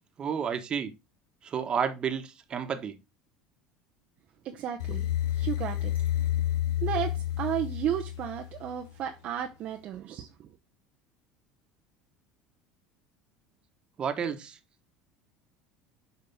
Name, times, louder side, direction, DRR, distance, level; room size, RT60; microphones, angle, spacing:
voice 1, 0.2-0.9 1.4-3.0 14.0-14.6, right 7 dB, 40° right, 1.3 m, -31 dB
voice 2, 4.4-5.1 5.3-5.9 6.8-10.5, right 10 dB, 55° right, 0.8 m, -33 dB
sound 1, 4.8-8.9, left 12 dB, 85° left, 0.6 m, -30 dB
6.9 x 5.1 x 3.5 m
supercardioid pair, 90°, 3 cm